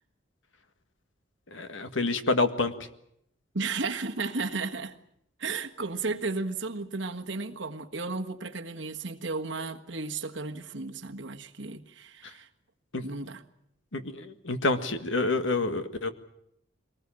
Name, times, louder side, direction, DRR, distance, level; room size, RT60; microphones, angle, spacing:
voice 1, 1.5-2.7 12.9-13.0 13.9-16.1, left 3 dB, 80° left, 1.8 m, -28 dB
voice 2, 3.5-5.0 5.4-12.5 13.0-13.4, right 3 dB, 65° right, 1.5 m, -34 dB
23.5 x 19.5 x 8.8 m
head